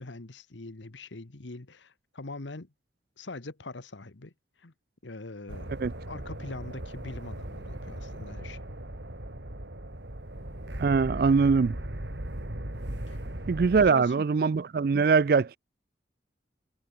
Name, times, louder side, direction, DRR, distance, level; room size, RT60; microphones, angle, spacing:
voice 1, 0.0-2.7 3.2-4.3 4.6-4.7 5.0-5.7 6.1-8.6 13.1-13.2 13.8-14.3, left 2 dB, 90° left, 1.3 m, -42 dB
sound 1, 5.5-13.9, right 1 dB, 75° right, 3.0 m, -38 dB
voice 2, 10.8-11.8 13.5-15.5, right 5 dB, 55° right, 0.4 m, -22 dB
head